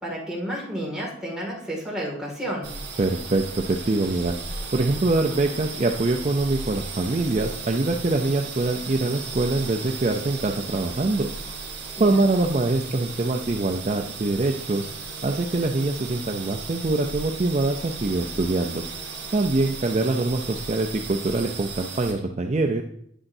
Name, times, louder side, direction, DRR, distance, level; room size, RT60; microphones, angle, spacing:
voice 1, 0.0-2.7 12.0-12.2, equal, 5° right, -4 dB, 2.2 m, -31 dB
sound 1, 2.6-22.1, right 4 dB, 65° right, 3.1 m, -36 dB
voice 2, 3.0-4.3 4.7-11.3 12.0-14.9 15.2-18.8 19.3-22.8, right 2 dB, 35° right, 3 dB, 0.5 m, -24 dB
9.9 x 8.8 x 2.7 m, 0.70 s
head